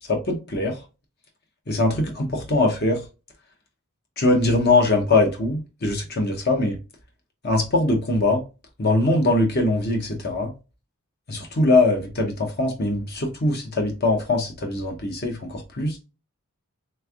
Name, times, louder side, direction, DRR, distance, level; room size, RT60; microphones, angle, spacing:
voice 1, 0.1-0.8 1.7-3.0 4.2-6.8 7.4-8.4 8.8-10.5 11.3-16.0, left 2 dB, 45° left, 0.7 m, -22 dB
3.4 x 3.1 x 2.3 m
head